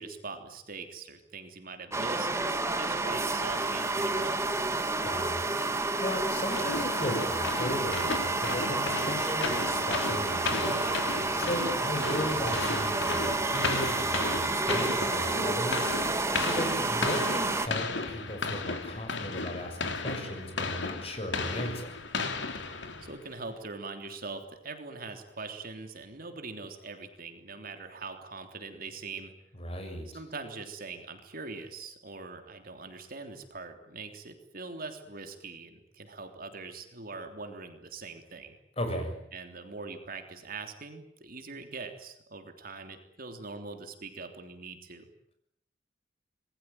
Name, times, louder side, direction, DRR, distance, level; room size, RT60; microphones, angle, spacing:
voice 1, 0.0-4.5 11.5-11.8 16.6-16.8 23.0-29.3 30.1-38.6 39.3-45.1, right 4 dB, 50° right, 6 dB, 3.3 m, -42 dB
sound 1, 1.9-17.7, right 3 dB, 15° right, 2.1 m, -30 dB
voice 2, 5.0-21.9 29.6-30.1 38.8-39.2, left 1 dB, 35° left, 6 dB, 6.6 m, -36 dB
sound 2, 6.5-23.3, left 4 dB, 75° left, 3.0 m, -35 dB
26.5 x 21.5 x 9.3 m, 0.75 s
head